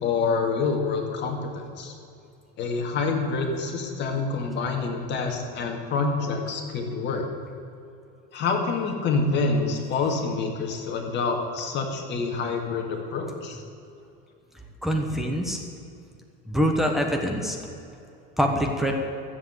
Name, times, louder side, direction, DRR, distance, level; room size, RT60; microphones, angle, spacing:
voice 1, 0.0-1.9 2.6-7.3 8.3-13.6, left 4 dB, 35° left, 2 dB, 2.1 m, -27 dB
voice 2, 14.8-15.6 16.5-17.6 18.4-18.9, equal, ahead, 1 dB, 1.2 m, -24 dB
14.0 x 7.8 x 8.1 m, 2.6 s
supercardioid pair, 140°, 29 cm